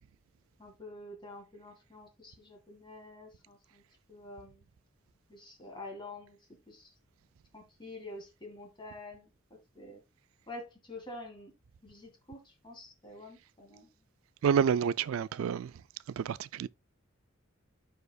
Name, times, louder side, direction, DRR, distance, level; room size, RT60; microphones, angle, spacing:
voice 1, 0.6-3.8 4.1-4.7 5.3-6.4 6.7-6.9 7.5-9.3 9.7-10.0 10.5-11.5 11.8-13.9, left 2 dB, 20° left, 1.9 m, -47 dB
voice 2, 14.4-15.7 16.2-16.7, right 7 dB, 85° right, 0.3 m, -28 dB
13.0 x 4.9 x 2.3 m
head